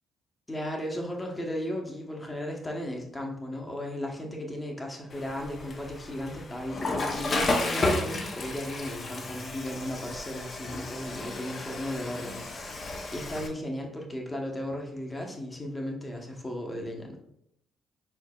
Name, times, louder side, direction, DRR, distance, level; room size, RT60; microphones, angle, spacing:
voice 1, 0.5-17.2, left 1 dB, 20° left, 1 dB, 0.9 m, -36 dB
Water / Toilet flush, 5.1-13.5, left 2 dB, 45° left, 0.6 m, -33 dB
4.5 x 4.0 x 2.3 m, 0.75 s
cardioid pair, 90°, 0 cm